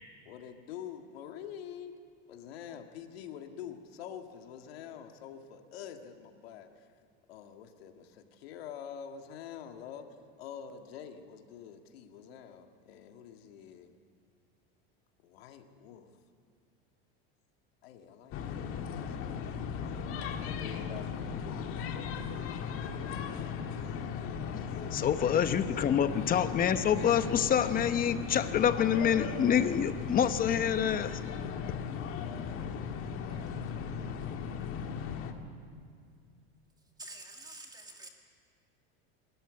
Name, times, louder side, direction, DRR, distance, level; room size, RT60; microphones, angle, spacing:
voice 1, 0.3-2.0 2.3-6.7 7.3-10.1 10.4-13.9 15.2-16.1 17.8-18.7 19.0-20.1 20.4-21.8, left 8 dB, 90° left, 5 dB, 1.9 m, -46 dB
sound 1, 18.3-35.3, left 6 dB, 45° left, 1.7 m, -37 dB
voice 2, 24.9-31.2, left 8 dB, 30° left, 12 dB, 0.9 m, -27 dB
voice 3, 33.7-35.1 37.0-38.1, right 2 dB, 15° right, 2 dB, 2.2 m, -50 dB
22.5 x 13.5 x 9.7 m, 2.2 s
supercardioid pair, 130°, 29 cm